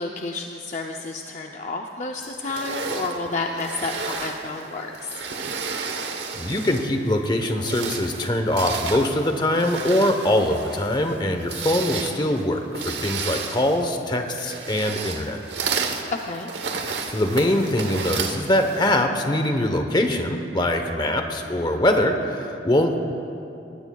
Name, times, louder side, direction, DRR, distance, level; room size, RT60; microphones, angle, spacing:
voice 1, 0.0-5.1 16.1-16.5, left 3 dB, 40° left, 2 dB, 0.5 m, -30 dB
sound 1, 2.4-7.0 7.5-19.0, right 5 dB, 75° right, 1.0 m, -32 dB
voice 2, 6.3-15.4 17.1-23.1, left 1 dB, 25° left, 5 dB, 0.9 m, -23 dB
20.0 x 17.5 x 2.3 m, 2.6 s
head